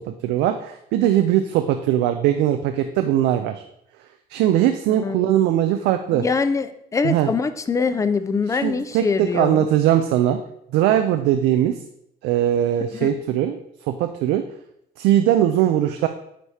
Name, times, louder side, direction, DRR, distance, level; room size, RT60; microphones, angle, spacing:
voice 1, 0.2-3.6 4.3-6.2 7.0-7.3 8.6-10.4 10.7-11.7 12.2-13.6 13.9-14.4 15.0-16.1, right 11 dB, 90° right, 8 dB, 0.5 m, -20 dB
voice 2, 5.0-5.4 6.1-9.7 12.9-13.1, left 5 dB, 20° left, 11 dB, 0.5 m, -24 dB
9.2 x 3.4 x 4.2 m, 0.76 s
cardioid pair, 110°, 17 cm